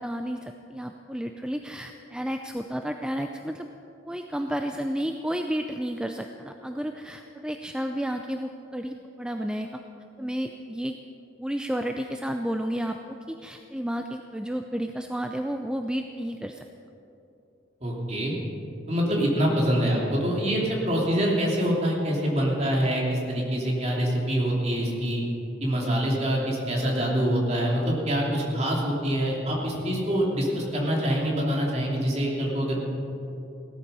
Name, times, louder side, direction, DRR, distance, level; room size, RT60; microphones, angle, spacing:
voice 1, 0.0-3.7 4.1-9.7 10.2-11.0 11.4-16.7, equal, 5° right, 5 dB, 0.4 m, -31 dB
voice 2, 17.8-18.3 18.9-25.2 25.6-32.8, equal, 35° right, -2 dB, 2.9 m, -25 dB
17.5 x 13.0 x 5.5 m, 2.9 s
head